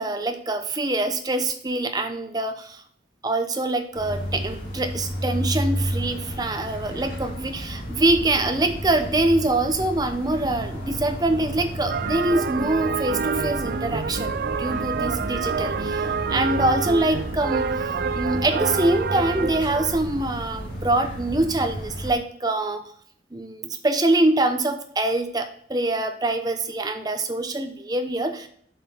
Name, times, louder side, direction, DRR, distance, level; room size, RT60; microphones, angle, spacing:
voice 1, 0.0-2.8 3.2-22.8 23.3-28.5, right 2 dB, 20° right, 7 dB, 0.8 m, -24 dB
sound 1, 3.9-22.1, equal, 50° left, 2.4 m, -32 dB
sound 2, 11.9-20.0, right 6 dB, 55° right, 0.3 m, -27 dB
7.4 x 5.7 x 4.4 m, 0.62 s
head